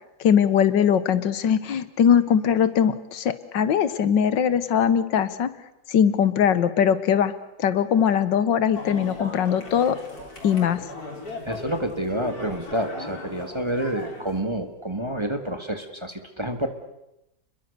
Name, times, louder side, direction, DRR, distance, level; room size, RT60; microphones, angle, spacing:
voice 1, 0.2-5.5 5.9-7.3 7.6-10.0 10.4-10.8, left 8 dB, 80° left, 14 dB, 1.8 m, -21 dB
sound 1, 8.7-14.4, left 2 dB, 55° left, 4.5 m, -38 dB
voice 2, 11.5-16.7, right 1 dB, 15° right, 7 dB, 1.9 m, -28 dB
29.5 x 21.5 x 6.8 m, 0.89 s
omnidirectional pair, 1.9 m